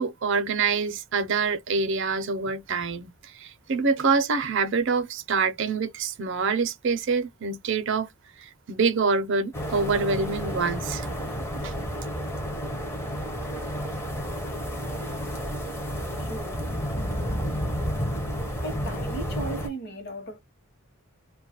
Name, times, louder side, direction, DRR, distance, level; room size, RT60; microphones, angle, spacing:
voice 1, 0.0-8.1 8.4-11.1 11.5-11.7, right 4 dB, 55° right, 0.5 m, -26 dB
sound 1, 9.5-19.7, equal, 10° left, 0.5 m, -31 dB
voice 2, 16.2-16.7 18.6-20.4, right 1 dB, 50° left, 0.9 m, -36 dB
2.3 x 2.0 x 2.8 m
head